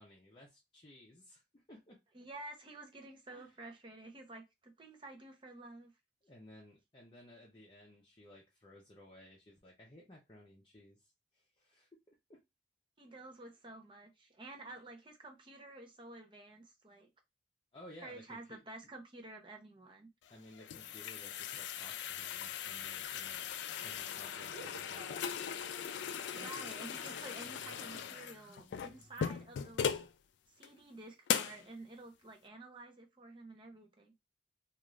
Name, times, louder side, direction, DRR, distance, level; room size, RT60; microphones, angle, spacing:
voice 1, 0.0-2.0 3.3-3.5 6.2-12.4 14.7-14.8 17.7-18.6 20.3-26.3, left 1 dB, 25° left, 0.6 m, -57 dB
voice 2, 2.1-5.9 13.0-17.1 18.0-20.1 26.3-30.0 30.6-34.1, right 2 dB, 25° right, 0.6 m, -51 dB
sound 1, 20.3-30.1 30.6-30.7 31.3-31.6, left 8 dB, 75° left, 0.3 m, -39 dB
sound 2, 22.6-29.4, right 2 dB, 80° right, 1.1 m, -58 dB
2.4 x 2.4 x 3.1 m
head